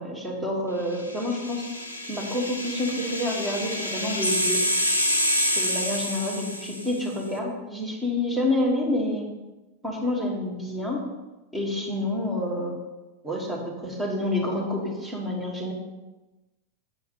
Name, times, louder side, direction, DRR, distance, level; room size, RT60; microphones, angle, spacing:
voice 1, 0.0-1.7 2.1-4.6 5.6-9.3 9.8-11.0 11.5-12.8 13.2-15.7, left 1 dB, 5° right, -3 dB, 1.8 m, -28 dB
sound 1, 1.1-7.0, equal, 80° left, 0.6 m, -27 dB
7.3 x 4.5 x 4.9 m, 1.1 s
figure-of-eight pair, 90°, 0 cm